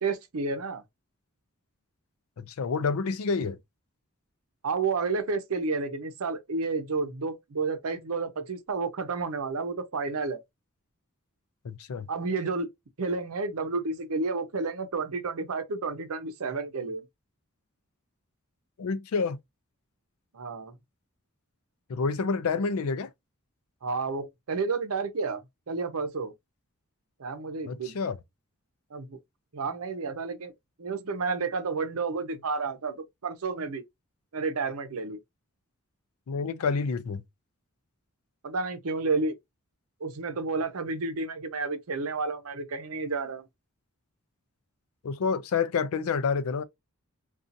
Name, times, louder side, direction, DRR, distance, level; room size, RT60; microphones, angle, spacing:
voice 1, 0.0-0.8 4.6-10.4 12.1-12.7 13.0-17.1 20.3-20.8 23.8-26.3 27.2-28.0 28.9-29.2 29.5-30.5 30.8-33.8 34.3-35.2 38.4-39.4 40.0-43.5, right 4 dB, 80° right, 0.6 m, -31 dB
voice 2, 2.4-3.6 11.6-12.1 18.8-19.4 21.9-23.1 27.7-28.2 36.3-37.2 45.0-46.6, left 5 dB, 80° left, 0.4 m, -28 dB
2.6 x 2.4 x 2.5 m
head